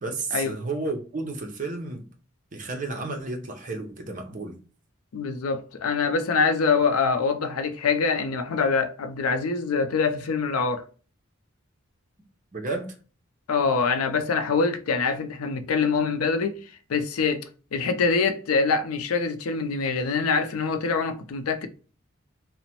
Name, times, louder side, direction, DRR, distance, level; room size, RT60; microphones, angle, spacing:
voice 1, 0.0-2.1 2.5-4.6 12.5-12.9, right 3 dB, 35° right, 0.6 m, -32 dB
voice 2, 5.1-10.8 13.5-16.5 16.9-17.4 17.7-21.7, left 5 dB, 90° left, 0.5 m, -24 dB
2.9 x 2.1 x 2.8 m
head